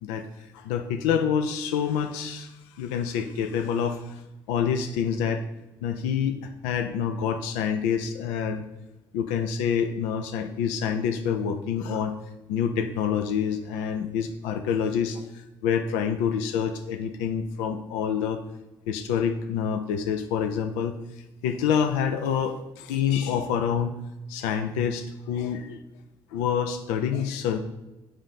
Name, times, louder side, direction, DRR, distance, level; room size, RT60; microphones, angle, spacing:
voice 1, 0.5-4.2 4.5-5.5 5.8-8.6 9.1-12.1 12.5-18.4 18.9-24.0 24.3-25.8 26.3-27.6, left 7 dB, 80° left, 7 dB, 0.4 m, -27 dB
7.1 x 2.6 x 5.6 m, 1.0 s
hypercardioid pair, 55°, 12 cm